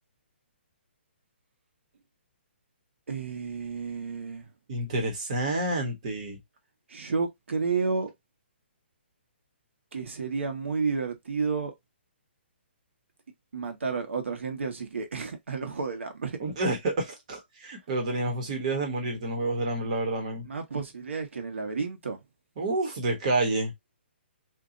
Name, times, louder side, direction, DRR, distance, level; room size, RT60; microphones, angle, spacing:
voice 1, 3.1-4.5 6.9-8.1 9.9-11.7 13.5-16.4 20.4-22.2, right 5 dB, 85° right, 1.4 m, -31 dB
voice 2, 4.7-6.4 16.4-20.5 22.6-23.7, right 2 dB, 35° right, 1.3 m, -29 dB
2.9 x 2.6 x 3.9 m
hypercardioid pair, 170°, 6 cm